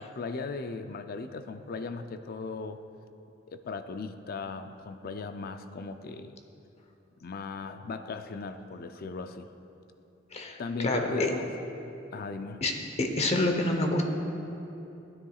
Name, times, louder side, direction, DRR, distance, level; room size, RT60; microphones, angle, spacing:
voice 1, 0.0-2.8 3.5-6.4 7.2-9.5 10.6-11.5 12.1-12.6, left 4 dB, 50° left, 9 dB, 0.5 m, -37 dB
voice 2, 10.3-11.3 12.6-12.7 13.0-14.1, left 2 dB, 35° left, 4 dB, 0.9 m, -27 dB
16.0 x 9.6 x 2.4 m, 2.8 s
head